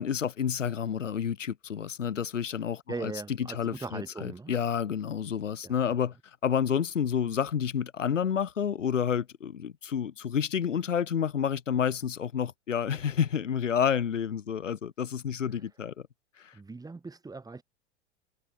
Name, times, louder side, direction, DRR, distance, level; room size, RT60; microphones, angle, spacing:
voice 1, 0.0-3.1 3.4-15.9 16.4-16.6, left 8 dB, 85° left, 0.6 m, -29 dB
voice 2, 2.9-4.5 5.6-5.8 15.6-15.7 16.5-17.6, right 3 dB, 10° right, 3.8 m, -39 dB
figure-of-eight pair, 90°, 36 cm